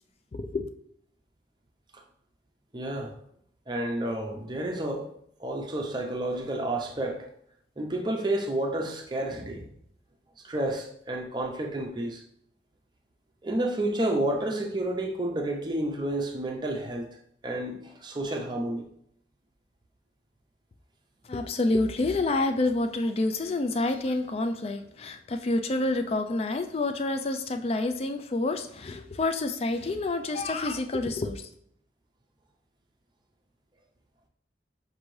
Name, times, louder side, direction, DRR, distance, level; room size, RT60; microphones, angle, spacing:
voice 1, 0.3-0.7 21.3-31.5, left 2 dB, 35° left, 7 dB, 0.3 m, -28 dB
voice 2, 2.7-3.2 3.7-5.1 5.4-7.3 7.8-9.7 10.4-12.2 13.4-17.1 17.4-18.9, right 1 dB, 25° right, 2 dB, 0.6 m, -30 dB
6.5 x 2.6 x 3.1 m, 0.70 s
head